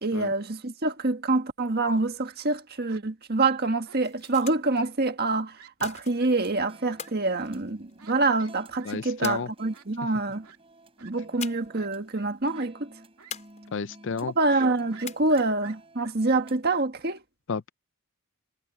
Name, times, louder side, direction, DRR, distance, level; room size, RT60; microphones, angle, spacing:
voice 1, 0.0-10.5 11.0-12.9 14.2-17.2, right 3 dB, 45° right, 1.7 m, -26 dB
Fowl, 2.0-2.4 2.9-3.0 3.8-4.3 4.7-4.9 5.2-5.3 5.5-5.7 6.1-6.3 7.0-7.1 8.0-8.1 8.4-8.5 8.8-8.9 9.2-9.3 9.7-9.9 10.4-10.6 11.0-11.1 11.7-12.3 12.5-12.7 13.2-13.3 13.6-13.7 14.9-16.1, right 7 dB, 80° right, 3.1 m, -50 dB
sound 1, 3.9-4.8 5.8-6.4 7.0-8.2 9.2-10.0 11.4-11.9 12.1-12.2 13.3-14.0 15.0-15.6, left 7 dB, 30° left, 5.3 m, -42 dB
sound 2, 6.1-16.6, right 1 dB, 25° right, 5.5 m, -53 dB
voice 2, 8.9-9.5 13.7-14.3 17.5-17.7, left 5 dB, 55° left, 0.5 m, -31 dB
head